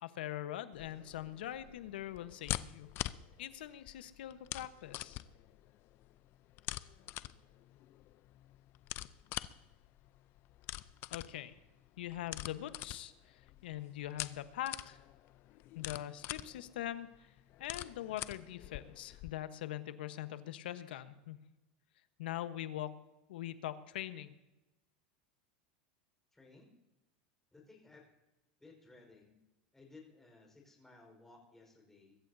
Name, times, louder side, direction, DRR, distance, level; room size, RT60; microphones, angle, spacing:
voice 1, 0.0-2.9 3.4-5.2 11.1-11.5 12.0-15.0 15.7-17.3 17.6-21.4 22.2-23.0 23.3-24.3, left 13 dB, 85° left, 11 dB, 1.1 m, -42 dB
sound 1, 0.7-19.3, left 15 dB, 45° left, 0.5 m, -45 dB
voice 2, 26.3-26.7 27.5-28.1 28.6-29.4 29.7-32.2, left 3 dB, 5° left, 0 dB, 4.6 m, -59 dB
23.0 x 13.5 x 2.7 m, 0.99 s
supercardioid pair, 130°, 5 cm